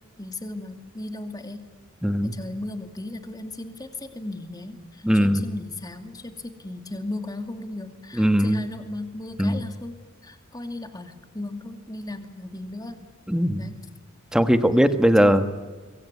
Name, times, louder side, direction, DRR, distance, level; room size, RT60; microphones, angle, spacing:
voice 1, 0.2-1.6 2.2-13.0 13.6-13.8 15.2-15.5, left 2 dB, 20° left, 7 dB, 2.5 m, -36 dB
voice 2, 2.0-2.3 5.0-5.4 8.1-8.6 9.4-9.6 13.3-13.7 14.3-15.4, equal, 5° right, 9 dB, 1.4 m, -19 dB
25.5 x 23.5 x 9.6 m, 1.4 s
head